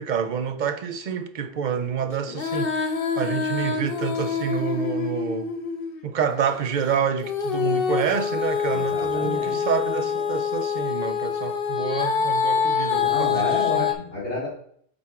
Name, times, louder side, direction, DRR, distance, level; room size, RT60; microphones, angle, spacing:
voice 1, 0.0-5.5 6.0-13.8, right 7 dB, 55° right, 0.6 m, -28 dB
Female singing, 2.3-6.0 7.2-13.9, left 6 dB, 60° left, 0.9 m, -25 dB
voice 2, 8.7-9.6 13.0-14.5, left 2 dB, 80° left, 3.1 m, -30 dB
7.4 x 3.6 x 4.6 m
omnidirectional pair, 1.1 m